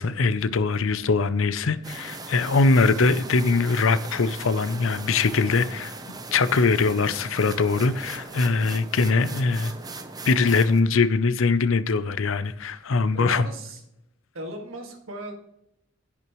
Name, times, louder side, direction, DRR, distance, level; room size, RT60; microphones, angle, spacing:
voice 1, 0.0-5.9 6.3-9.7 10.2-13.5, left 4 dB, 70° left, 0.6 m, -22 dB
sound 1, 1.8-10.8, right 3 dB, 20° right, 0.8 m, -39 dB
voice 2, 13.1-13.8 14.3-15.3, right 1 dB, 75° right, 1.9 m, -36 dB
16.5 x 5.9 x 3.1 m
head